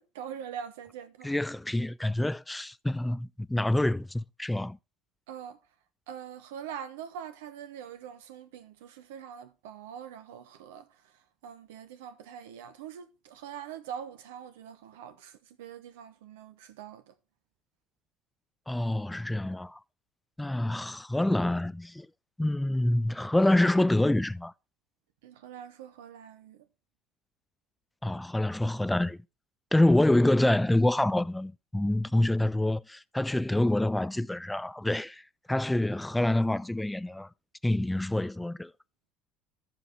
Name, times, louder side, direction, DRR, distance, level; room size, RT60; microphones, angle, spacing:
voice 1, 0.0-1.3 5.3-5.6 6.1-11.1 11.4-17.1 25.2-26.7, right 8 dB, 65° right, 1.1 m, -43 dB
voice 2, 1.2-4.8 18.7-19.8 20.4-22.1 22.4-24.5 28.0-29.2 29.7-35.2 35.5-37.3 37.6-38.7, left 1 dB, 5° left, 0.4 m, -26 dB
13.5 x 5.1 x 4.7 m
figure-of-eight pair, 60°, 0 cm